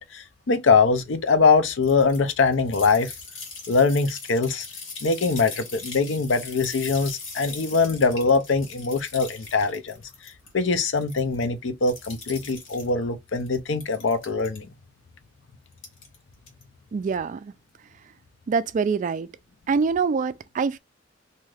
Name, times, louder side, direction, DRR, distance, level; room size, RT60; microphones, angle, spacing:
voice 1, 0.0-3.1 3.7-4.7 5.0-10.0 10.2-14.7, left 4 dB, 70° left, 0.5 m, -22 dB
sound 1, 1.8-10.5 10.8-11.5 11.8-12.9 13.3-14.6 15.7-16.1 16.5-16.6, left 4 dB, 90° left, 1.3 m, -40 dB
voice 2, 16.9-17.5 18.5-19.3 19.7-20.8, right 5 dB, 40° right, 0.3 m, -25 dB
2.7 x 2.4 x 3.2 m
head